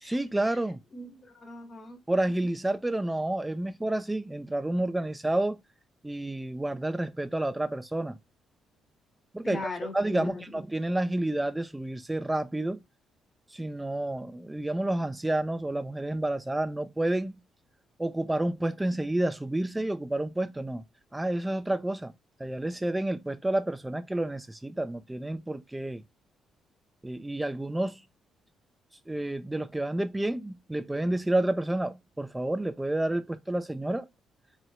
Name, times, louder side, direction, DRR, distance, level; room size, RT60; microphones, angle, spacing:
voice 1, 0.0-0.8 2.1-5.6 6.0-8.2 9.3-9.6 9.9-12.8 13.5-17.4 18.0-20.8 21.1-22.1 22.4-26.0 27.0-28.0 29.1-34.1, right 1 dB, 10° right, 0.5 m, -30 dB
voice 2, 0.9-2.0 9.4-10.6, left 3 dB, 35° left, 1.5 m, -40 dB
4.3 x 2.5 x 3.0 m
cardioid pair, 90°, 0 cm